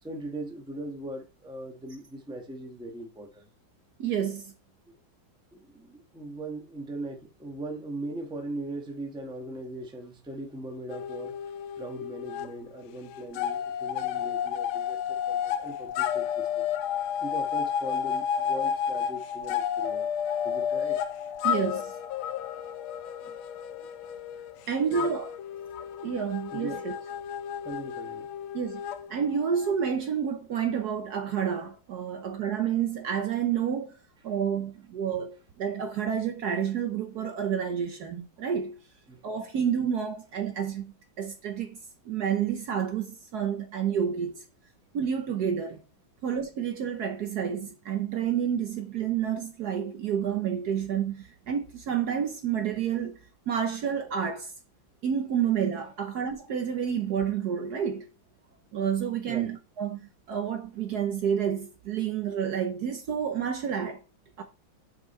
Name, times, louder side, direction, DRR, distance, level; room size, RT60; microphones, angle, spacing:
voice 1, 0.0-3.5 5.5-11.4 11.8-16.7 17.2-20.1 20.4-21.0 23.2-23.4 24.9-25.1 26.5-26.9 27.6-28.3 39.1-39.2 59.3-59.5, right 1 dB, 5° right, 0.8 m, -39 dB
voice 2, 4.0-4.5 21.4-21.9 24.7-25.3 26.0-27.0 28.5-28.8 29.1-33.9 34.2-38.8 39.2-41.8 42.0-44.4 44.9-45.8 46.2-53.2 53.5-54.5 55.0-58.1 58.7-64.0 64.4-64.5, right 8 dB, 60° right, 1.2 m, -29 dB
sound 1, 10.9-12.5 12.8-29.9, left 8 dB, 85° left, 1.4 m, -32 dB
6.4 x 5.2 x 4.2 m
omnidirectional pair, 2.2 m